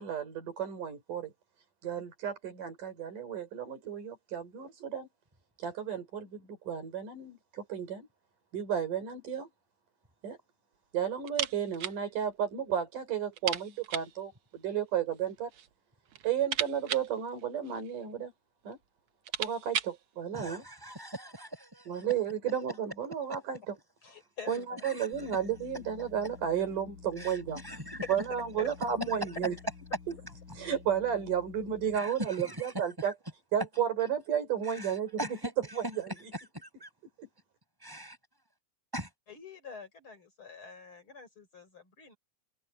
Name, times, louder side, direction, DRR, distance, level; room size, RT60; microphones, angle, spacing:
voice 1, 0.0-1.3 1.8-5.1 5.6-8.1 8.5-9.5 10.2-10.4 10.9-15.5 16.2-18.3 18.6-18.8 19.4-20.6 21.9-23.6 24.5-27.6 28.1-29.6 30.1-30.2 30.6-33.1 33.5-35.2 35.7-36.0 37.2-37.3, right 8 dB, 85° right, 6.0 m, -33 dB
sound 1, 11.3-12.0 12.3-12.4 12.7-12.8 13.3-14.2 15.1-15.7 16.1-18.0 18.7-18.8 19.1-20.0, right 9 dB, 60° right, 1.6 m, -36 dB
voice 2, 20.3-22.0 24.8-25.1 27.2-27.4 27.6-28.0 31.9-32.7 34.7-35.5 36.3-36.9 37.8-38.2 38.9-39.1, equal, 5° right, 7.5 m, -41 dB
voice 3, 24.0-24.9 26.7-26.8 28.6-28.7 30.6-30.7 39.3-42.2, left 5 dB, 40° left, 4.7 m, -47 dB
sound 2, 25.1-32.0, left 5 dB, 80° left, 6.2 m, -51 dB
omnidirectional pair, 3.6 m